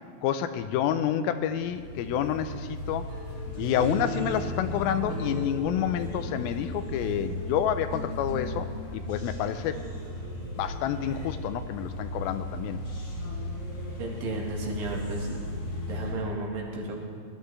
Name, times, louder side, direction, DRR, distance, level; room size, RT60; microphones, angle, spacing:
voice 1, 0.2-3.1 3.6-9.8 10.6-12.8, left 9 dB, 85° left, 10 dB, 2.4 m, -29 dB
sound 1, 1.4-16.1, left 1 dB, 70° left, 3.8 m, -36 dB
sound 2, 3.1-8.0, equal, 45° right, 3.6 m, -38 dB
voice 2, 14.0-15.4 15.9-17.0, right 2 dB, 70° right, -1 dB, 3.3 m, -33 dB
19.5 x 11.5 x 3.3 m, 2.1 s
omnidirectional pair, 4.2 m